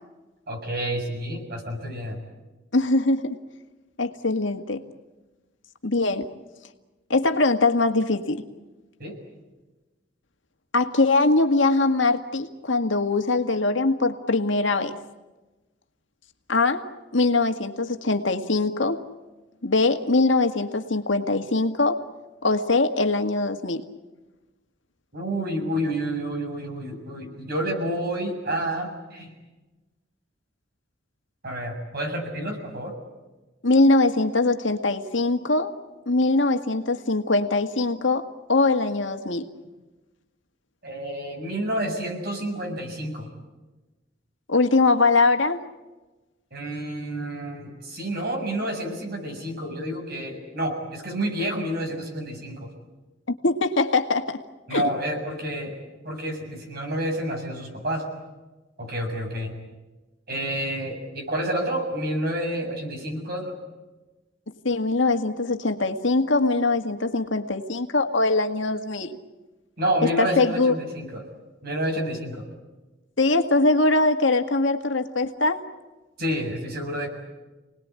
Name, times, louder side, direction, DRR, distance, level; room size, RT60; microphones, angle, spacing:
voice 1, 0.5-2.2 9.0-9.2 25.1-29.3 31.4-32.9 40.8-43.3 46.5-52.7 54.7-55.8 56.0-58.1 58.8-59.5 60.3-63.5 69.8-71.2 71.6-72.4 76.2-77.1, right 1 dB, 55° right, 3 dB, 7.0 m, -29 dB
voice 2, 2.7-3.4 4.0-4.8 5.8-6.3 7.1-8.4 10.7-14.9 16.5-16.8 17.1-19.0 19.6-22.0 22.4-23.8 33.6-35.7 36.1-39.4 44.5-45.6 53.4-54.4 54.7-54.9 64.6-69.2 70.0-70.7 73.2-75.6, left 3 dB, 70° left, 6 dB, 1.9 m, -22 dB
29.5 x 20.0 x 9.7 m, 1.1 s
head